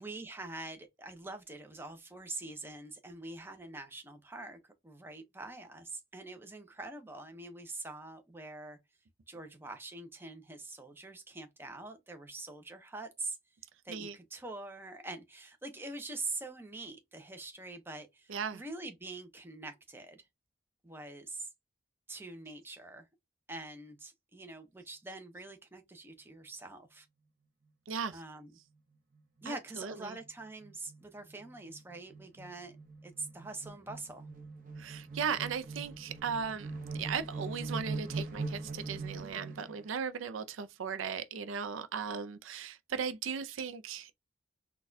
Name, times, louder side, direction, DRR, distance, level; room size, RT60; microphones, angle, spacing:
voice 1, 0.0-8.8 9.3-13.4 13.8-20.2 20.8-21.5 22.1-23.1 23.5-27.1 28.1-28.6 29.4-32.8 33.0-34.3, right 2 dB, 10° right, 0.6 m, -44 dB
voice 2, 18.3-18.6 27.9-28.2 29.5-30.2 34.8-44.1, right 6 dB, 85° right, 0.4 m, -37 dB
sound 1, 29.1-29.5 29.8-29.9 30.2-39.9, right 3 dB, 45° right, 0.7 m, -42 dB
3.9 x 2.3 x 2.5 m
head